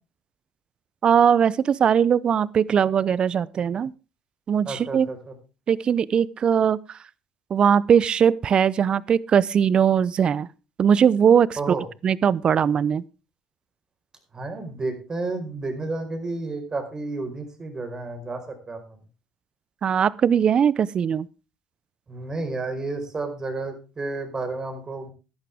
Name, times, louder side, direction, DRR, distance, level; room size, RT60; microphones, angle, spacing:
voice 1, 1.0-3.9 4.5-5.1 5.7-7.0 7.5-10.5 10.8-11.6 12.0-13.0 19.8-21.3, right 8 dB, 45° right, 0.6 m, -20 dB
voice 2, 4.6-5.3 11.6-11.8 14.3-19.0 22.1-25.1, right 3 dB, 30° right, 4.8 m, -31 dB
15.0 x 11.5 x 3.5 m
hypercardioid pair, 65°, 2 cm